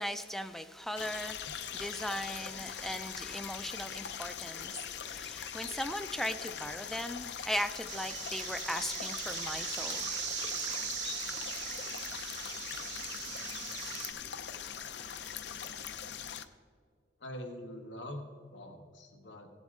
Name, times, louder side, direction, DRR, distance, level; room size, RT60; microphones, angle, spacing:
voice 1, 0.0-10.1, equal, ahead, 8 dB, 0.3 m, -38 dB
sound 1, 1.0-16.4, left 8 dB, 70° left, 0.6 m, -41 dB
sound 2, 7.9-14.1, right 8 dB, 75° right, 1.3 m, -39 dB
voice 2, 17.2-18.2 18.5-19.5, left 1 dB, 90° left, 3 dB, 1.2 m, -44 dB
17.5 x 8.0 x 3.6 m, 2.1 s
head